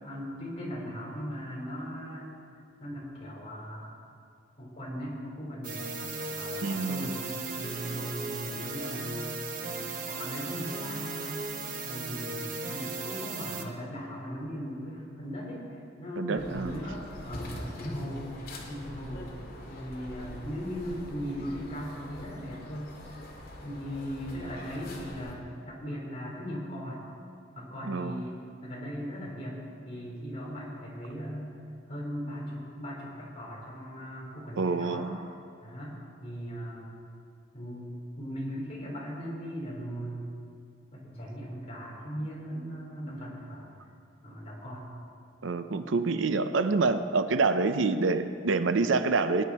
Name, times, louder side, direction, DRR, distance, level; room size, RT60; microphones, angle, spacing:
voice 1, 0.0-2.3 2.8-3.9 4.6-7.2 7.5-9.4 10.1-11.5 11.8-18.3 18.7-19.3 19.7-22.9 23.6-27.0 27.5-31.5 31.9-35.0 35.6-36.9 37.5-40.3 40.9-43.7 44.2-44.9, equal, 30° left, -5 dB, 3.7 m, -38 dB
sound 1, 5.6-13.6, right 3 dB, 45° right, 1.0 m, -36 dB
voice 2, 6.6-7.1 16.2-16.8 27.8-28.2 34.6-35.2 45.4-49.4, right 3 dB, 85° right, 10 dB, 0.6 m, -27 dB
sound 2, 16.4-25.3, left 1 dB, 50° left, 2.1 m, -44 dB
20.5 x 10.0 x 4.2 m, 2.4 s
head